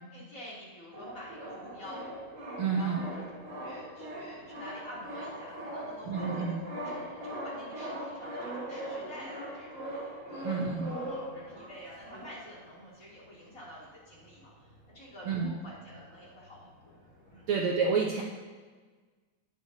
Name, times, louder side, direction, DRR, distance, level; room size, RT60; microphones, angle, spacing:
voice 1, 0.1-2.1 2.7-3.3 3.6-9.9 10.2-14.7 14.9-17.0 17.3-17.4, left 1 dB, 25° left, -8 dB, 3.2 m, -48 dB
sound 1, 0.9-12.7 13.2-13.3 13.5-13.7 14.2-15.5 15.8-17.5, right 1 dB, 35° right, 1.4 m, -41 dB
voice 2, 2.6-3.1 6.1-6.6 10.4-10.9 15.2-15.5 17.5-18.2, right 5 dB, 70° right, -1 dB, 1.3 m, -29 dB
17.0 x 6.5 x 2.8 m, 1.4 s
omnidirectional pair, 3.4 m